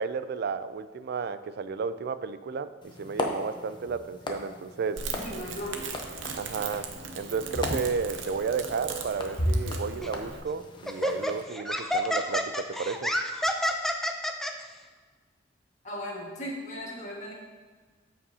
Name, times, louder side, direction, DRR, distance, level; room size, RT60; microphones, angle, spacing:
voice 1, 0.0-2.7 3.0-5.0 6.3-6.9 7.1-13.1, right 5 dB, 55° right, 13 dB, 0.4 m, -32 dB
sound 1, 2.8-11.4, left 1 dB, 25° left, 0.8 m, -36 dB
Crackle, 5.0-10.4, right 4 dB, 85° right, 0.8 m, -37 dB
voice 2, 5.1-5.9 15.8-17.3, equal, 40° left, -2 dB, 1.7 m, -37 dB
Laughter, 10.0-10.2 10.9-14.5, equal, ahead, 0.5 m, -29 dB
14.0 x 5.1 x 2.8 m, 1.4 s
head